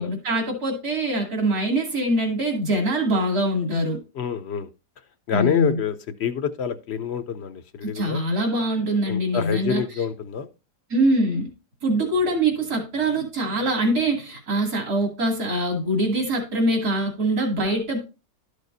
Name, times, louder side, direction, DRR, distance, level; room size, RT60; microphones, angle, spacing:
voice 1, 0.0-4.0 5.3-5.8 7.8-9.8 10.9-11.5 11.8-18.0, right 1 dB, 65° right, 1 dB, 3.0 m, -23 dB
voice 2, 4.1-4.7 5.3-5.9 6.2-8.2 9.1-10.5, left 7 dB, 60° left, 11 dB, 0.7 m, -26 dB
12.5 x 6.6 x 2.6 m, 0.29 s
omnidirectional pair, 1.7 m